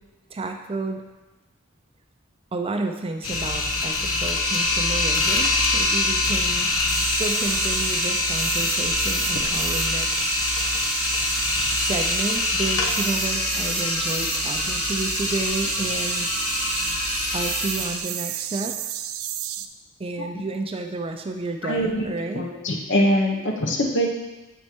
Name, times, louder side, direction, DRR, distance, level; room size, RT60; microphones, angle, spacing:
voice 1, 0.3-1.0 2.5-6.7 7.2-10.3 11.7-16.3 17.3-18.8 20.0-22.5, right 2 dB, 25° right, 5 dB, 0.5 m, -31 dB
sound 1, 3.2-18.0, left 3 dB, 85° left, 1.0 m, -24 dB
sound 2, 6.9-19.7, right 11 dB, 80° right, 0.4 m, -31 dB
voice 2, 21.6-22.0 22.3-24.1, equal, 60° left, 1 dB, 1.1 m, -23 dB
8.2 x 4.4 x 4.5 m, 1.1 s
head